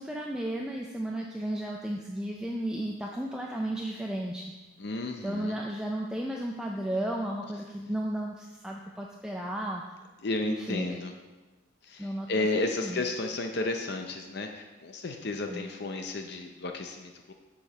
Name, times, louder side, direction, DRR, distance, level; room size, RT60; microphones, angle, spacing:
voice 1, 0.0-4.5 5.2-9.8 10.4-10.9 12.0-12.3 12.5-13.0 15.5-15.7, right 1 dB, 5° right, -1 dB, 0.4 m, -34 dB
voice 2, 4.8-5.6 10.2-11.1 11.8-17.3, left 2 dB, 50° left, 4 dB, 0.6 m, -33 dB
7.1 x 4.9 x 6.6 m, 1.2 s
head